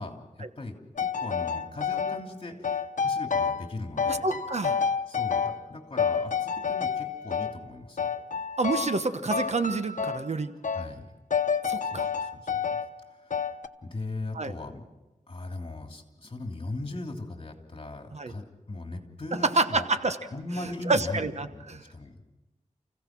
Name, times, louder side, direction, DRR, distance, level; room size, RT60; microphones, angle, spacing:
voice 1, 0.0-4.3 5.1-8.1 10.7-11.1 11.8-12.7 13.1-13.5 13.8-14.9 15.3-19.9 20.3-22.3, left 2 dB, 45° left, 3 dB, 3.1 m, -39 dB
sound 1, 1.0-2.2 2.6-3.7 4.0-5.7 6.0-7.6 8.0-9.0 9.3-10.3 10.6-10.9 11.3-12.9 13.3-13.7, left 6 dB, 75° left, 1.0 m, -29 dB
voice 2, 4.1-4.8 8.6-10.5 11.7-12.1 14.3-14.5 18.1-18.3 19.6-20.2 20.9-21.8, right 3 dB, 55° right, 9 dB, 1.2 m, -28 dB
29.5 x 16.0 x 6.1 m, 1.1 s
wide cardioid pair, 80°, 13 cm